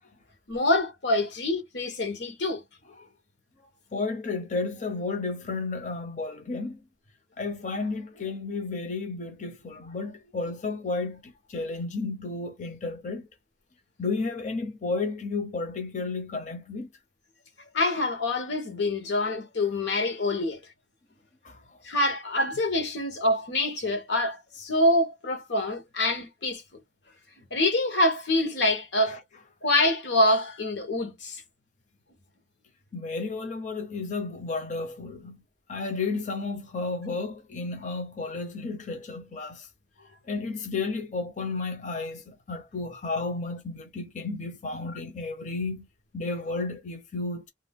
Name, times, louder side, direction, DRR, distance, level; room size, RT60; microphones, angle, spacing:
voice 1, 0.5-2.6 17.7-20.6 21.8-26.6 27.5-29.2 29.6-31.4, left 1 dB, 85° left, 1.0 m, -25 dB
voice 2, 3.9-6.8 7.4-13.3 14.0-16.9 21.4-21.6 29.1-29.2 32.9-35.4 35.7-39.7 40.3-45.9 46.1-47.5, left 3 dB, 45° left, 0.6 m, -32 dB
2.5 x 2.2 x 3.4 m
head